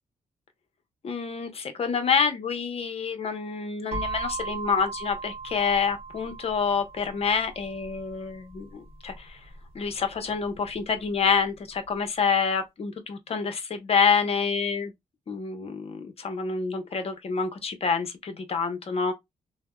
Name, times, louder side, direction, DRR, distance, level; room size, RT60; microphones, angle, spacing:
voice 1, 1.0-9.4 9.7-14.9 15.3-19.1, left 5 dB, 45° left, 0.7 m, -27 dB
sound 1, 3.9-11.7, right 4 dB, 40° right, 0.9 m, -39 dB
3.3 x 2.0 x 2.2 m
cardioid pair, 105°, 15 cm